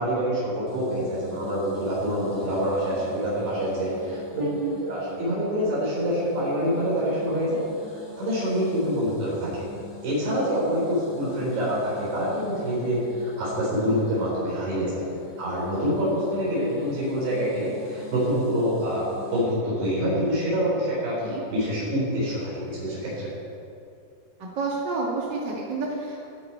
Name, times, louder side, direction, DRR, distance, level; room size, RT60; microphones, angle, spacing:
voice 1, 0.0-4.4 4.8-7.6 7.9-9.6 10.0-15.0 15.4-19.1 19.3-21.2 21.5-23.3, equal, 70° right, -8 dB, 6.7 m, -26 dB
sound 1, 0.7-19.6, equal, 30° left, 1.3 m, -44 dB
voice 2, 4.4-4.8 21.2-21.4 24.5-26.2, right 4 dB, 45° right, -4 dB, 1.4 m, -29 dB
25.5 x 9.9 x 4.6 m, 2.5 s
omnidirectional pair, 5.3 m